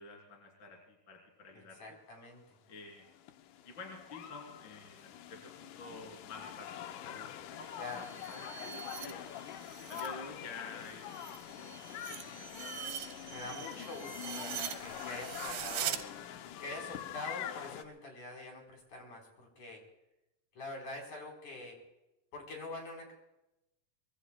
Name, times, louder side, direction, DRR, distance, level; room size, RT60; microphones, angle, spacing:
voice 1, 0.0-1.8 2.7-3.1 3.6-9.2 9.9-11.2 11.5-11.8 12.1-13.9, left 3 dB, 30° left, 0 dB, 3.5 m, -50 dB
voice 2, 1.8-2.4 7.8-8.1 13.3-16.0 16.6-19.8 20.5-21.8 22.3-23.1, left 2 dB, 50° left, 1 dB, 5.5 m, -45 dB
sound 1, 2.7-17.8, left 11 dB, 85° left, 1.8 m, -45 dB
sound 2, 7.7-10.1 10.5-16.0, right 10 dB, 75° right, 2.9 m, -43 dB
24.5 x 22.5 x 2.3 m, 0.89 s
omnidirectional pair, 4.8 m